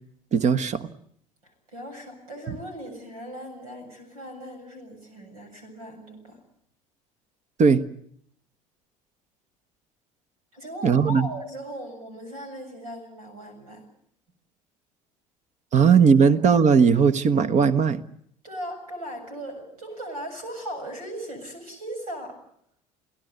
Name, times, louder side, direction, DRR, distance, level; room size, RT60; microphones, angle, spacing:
voice 1, 0.3-0.9 7.6-7.8 10.8-11.3 15.7-18.0, right 6 dB, 40° right, 13 dB, 1.4 m, -18 dB
voice 2, 1.4-6.4 10.5-13.8 15.8-15.9 16.2-16.3 18.4-22.4, equal, 85° right, 5 dB, 7.5 m, -38 dB
29.0 x 17.5 x 8.1 m, 0.69 s
hypercardioid pair, 65°, 18 cm